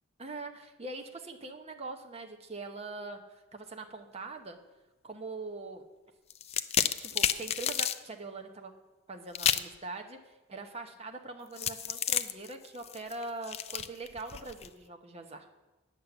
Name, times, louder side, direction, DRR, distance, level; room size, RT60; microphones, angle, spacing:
voice 1, 0.2-4.6 5.0-5.8 7.0-8.7 9.1-15.5, right 3 dB, 30° right, 4 dB, 1.0 m, -42 dB
sound 1, 6.3-8.0 9.3-9.8 11.6-14.7, left 9 dB, 30° left, 0.4 m, -31 dB
9.8 x 6.6 x 7.9 m, 1.1 s
head